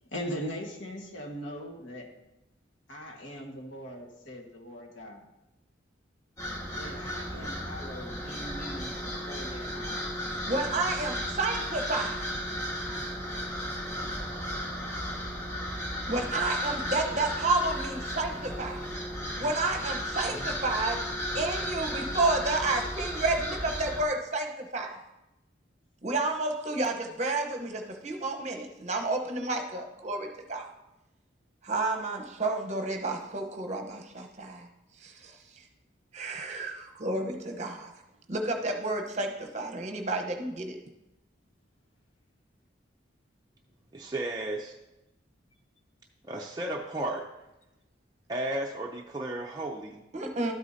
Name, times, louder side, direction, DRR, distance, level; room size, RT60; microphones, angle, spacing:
voice 1, 0.0-2.1 2.9-5.2 6.7-10.1 17.0-17.2 20.2-20.6, equal, 75° left, 1 dB, 1.6 m, -41 dB
sound 1, 6.4-24.0, equal, 15° left, 1.5 m, -34 dB
voice 2, 10.5-12.2 16.1-18.9 19.4-25.0 26.0-30.7 31.6-34.7 35.0-35.3 36.1-37.9 38.3-40.8 50.1-50.5, right 2 dB, 35° right, 3 dB, 1.0 m, -31 dB
voice 3, 43.9-44.8 46.2-47.2 48.3-50.0, right 1 dB, 20° right, -1 dB, 0.5 m, -34 dB
12.5 x 8.2 x 2.8 m, 0.94 s
head